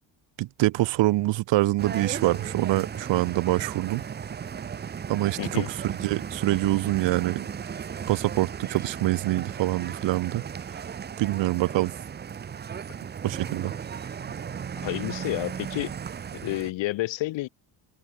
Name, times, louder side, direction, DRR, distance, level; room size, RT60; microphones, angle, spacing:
voice 1, 0.4-4.0 5.1-7.5 8.1-10.4 11.2-11.9 13.2-13.7, right 18 dB, 75° right, 1.8 m, -25 dB
sound 1, 1.8-16.7, right 7 dB, 25° right, 0.6 m, -36 dB
voice 2, 5.4-5.7 14.8-15.9 16.3-17.5, left 18 dB, 80° left, 4.1 m, -30 dB
cardioid pair, 105°, 44 cm